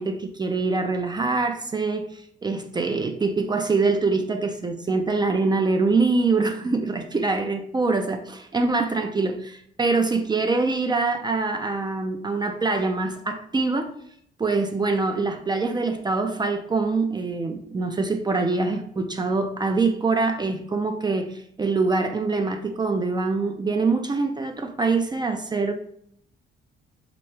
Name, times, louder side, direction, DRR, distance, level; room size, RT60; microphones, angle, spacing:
voice 1, 0.0-13.9 14.4-25.7, right 3 dB, 20° right, 5 dB, 0.4 m, -24 dB
3.5 x 3.0 x 3.2 m, 0.68 s
cardioid pair, 90°, 20 cm